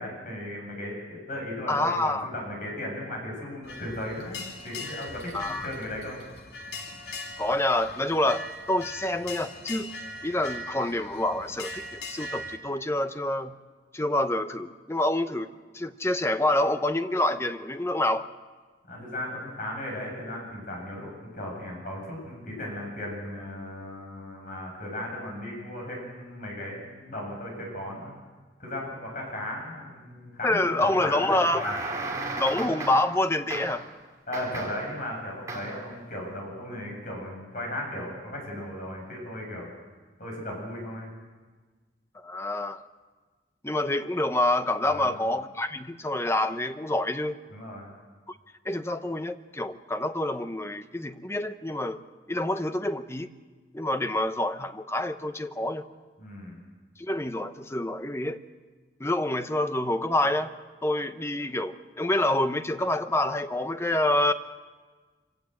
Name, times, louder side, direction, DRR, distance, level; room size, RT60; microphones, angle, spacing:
voice 1, 0.0-6.2 18.9-28.1 28.6-31.4 34.3-39.7 40.2-41.1 44.9-45.2 47.5-47.9 56.2-56.6, left 1 dB, 50° left, -1 dB, 7.6 m, -36 dB
voice 2, 1.7-2.3 5.3-5.7 7.4-9.9 10.2-13.6 13.9-15.5 15.7-18.3 30.4-31.8 32.4-33.9 42.1-42.8 43.6-47.4 48.6-52.0 52.3-53.3 53.7-55.8 57.0-58.4 59.0-60.5 60.8-64.3, left 1 dB, 15° left, 10 dB, 0.8 m, -27 dB
sound 1, 3.6-12.6, left 2 dB, 65° left, 2.8 m, -40 dB
sound 2, 31.2-33.2 33.5-33.9 34.3-34.9 35.5-35.9, right 2 dB, 20° right, 3.3 m, -35 dB
25.0 x 17.0 x 7.8 m, 1.4 s
head